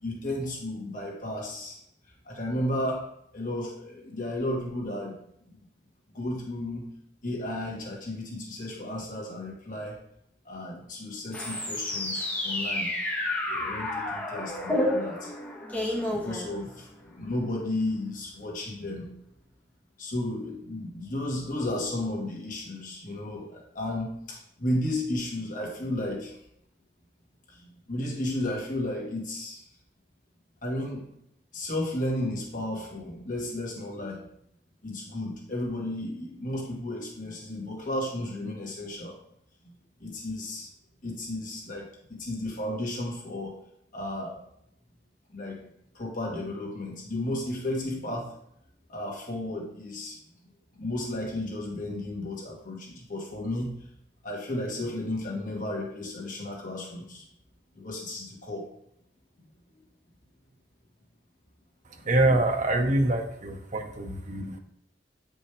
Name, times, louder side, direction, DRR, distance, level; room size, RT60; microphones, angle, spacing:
voice 1, 0.0-1.8 2.3-3.0 3.3-5.1 6.2-6.8 7.2-9.9 10.5-12.9 13.5-15.3 16.1-16.7 17.1-19.1 20.0-26.3 27.9-29.6 30.6-31.0 31.5-34.2 34.8-39.2 40.0-40.7 41.0-41.9 42.2-43.5 43.9-44.4 45.3-45.6 46.0-48.3 48.9-50.1 50.8-53.7 54.2-57.2 57.8-58.6, left 1 dB, 50° left, -2 dB, 1.7 m, -33 dB
sound 1, 11.3-17.0, left 1 dB, 10° left, 1.3 m, -30 dB
voice 2, 61.9-64.6, right 2 dB, 45° right, 4 dB, 1.0 m, -25 dB
9.1 x 5.3 x 3.4 m, 0.74 s
head